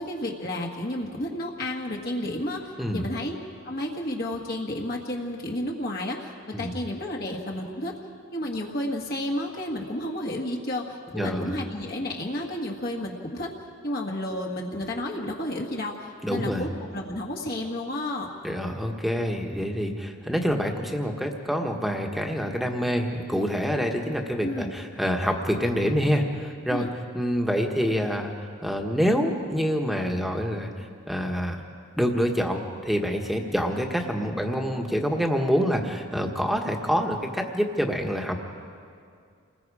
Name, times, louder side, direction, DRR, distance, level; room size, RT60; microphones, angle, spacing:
voice 1, 0.0-3.4 3.6-7.9 8.3-13.5 13.8-18.3 24.4-24.7 26.7-26.9, left 1 dB, 45° left, -1 dB, 1.6 m, -31 dB
voice 2, 11.1-11.6 16.2-16.7 18.4-26.9 27.1-28.3 28.6-31.6 32.0-38.4, equal, ahead, 2 dB, 1.4 m, -26 dB
29.0 x 20.5 x 4.9 m, 2.3 s
head